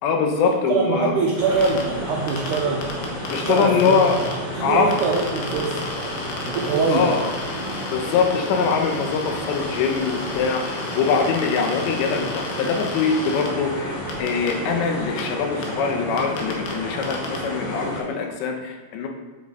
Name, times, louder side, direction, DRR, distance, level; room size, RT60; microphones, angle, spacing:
voice 1, 0.0-1.1 3.3-4.2 4.6-4.9 6.9-7.3 7.9-19.1, left 5 dB, 90° left, 3 dB, 3.3 m, -23 dB
voice 2, 0.7-2.9 3.4-5.8 6.5-7.1, right 4 dB, 80° right, -3 dB, 1.8 m, -23 dB
sound 1, 1.3-18.0, equal, 30° left, 3.5 m, -31 dB
sound 2, 1.6-1.8 2.3-4.3 4.9-13.5 14.1-14.5 15.2-15.3 15.6-15.7 16.2-16.7 17.0-17.4, left 3 dB, 70° left, 3.0 m, -35 dB
9.5 x 7.5 x 3.9 m, 1.3 s
omnidirectional pair, 5.0 m